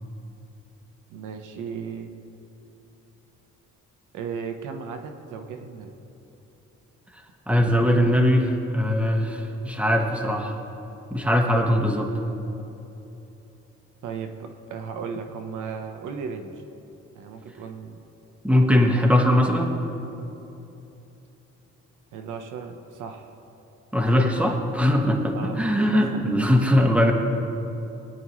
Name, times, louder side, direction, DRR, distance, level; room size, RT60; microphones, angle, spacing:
voice 1, 1.1-2.1 4.1-5.9 14.0-16.6 17.1-18.0 22.1-23.4 24.0-24.3 25.3-26.2 26.8-27.0, right 6 dB, 85° right, 6 dB, 1.0 m, -36 dB
voice 2, 7.5-10.6 11.1-12.1 18.4-19.8 23.9-27.1, left 1 dB, 5° right, 2 dB, 1.4 m, -21 dB
21.0 x 10.0 x 3.1 m, 3.0 s
cardioid pair, 90°, 30 cm